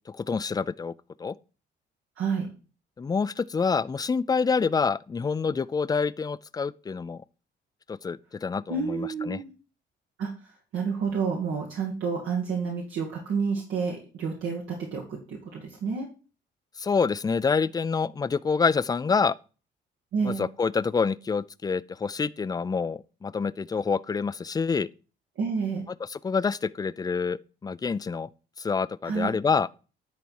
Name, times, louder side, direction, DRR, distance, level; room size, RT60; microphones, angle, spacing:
voice 1, 0.1-0.9 1.2-1.3 3.0-7.2 7.9-9.4 16.8-19.4 20.2-24.9 26.1-28.3 28.6-29.7, left 5 dB, 20° left, 0.4 m, -27 dB
voice 2, 2.2-2.5 8.7-9.5 10.2-14.6 14.9-16.1 20.1-20.4 25.4-25.8 29.0-29.3, right 5 dB, 80° right, 1.8 m, -29 dB
10.5 x 4.1 x 4.6 m
cardioid pair, 90°, 20 cm